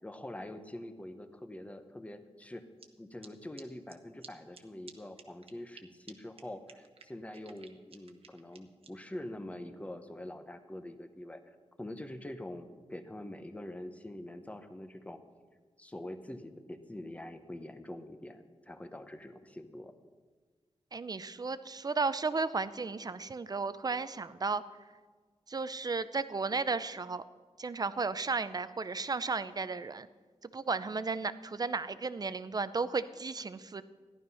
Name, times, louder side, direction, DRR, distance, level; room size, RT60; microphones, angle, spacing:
voice 1, 0.0-2.7 3.0-15.2 15.8-19.9, left 1 dB, 10° left, 8 dB, 0.9 m, -45 dB
sound 1, 2.8-2.9 3.2-3.3 3.6-3.7 3.9-4.0 4.2-4.3 4.5-4.6 4.9-5.0 5.2-5.8 6.1-6.2 6.4-6.5 6.7-8.9, right 5 dB, 60° right, 1.0 m, -52 dB
voice 2, 20.9-24.6 25.5-27.2 27.6-30.1 30.5-33.8, right 4 dB, 35° right, 14 dB, 0.5 m, -34 dB
14.5 x 11.5 x 5.5 m, 1.4 s
wide cardioid pair, 145°, 11 cm